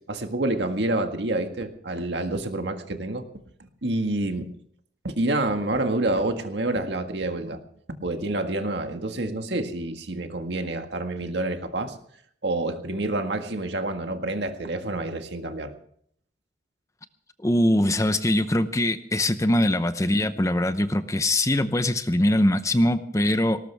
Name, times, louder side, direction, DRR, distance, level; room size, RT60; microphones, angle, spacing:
voice 1, 0.1-3.3 3.6-4.5 5.0-7.6 7.9-12.0 12.4-15.7, right 2 dB, 70° right, 6 dB, 1.7 m, -28 dB
voice 2, 17.4-23.6, left 1 dB, 15° left, 11 dB, 0.7 m, -22 dB
19.0 x 18.5 x 3.5 m, 0.63 s
head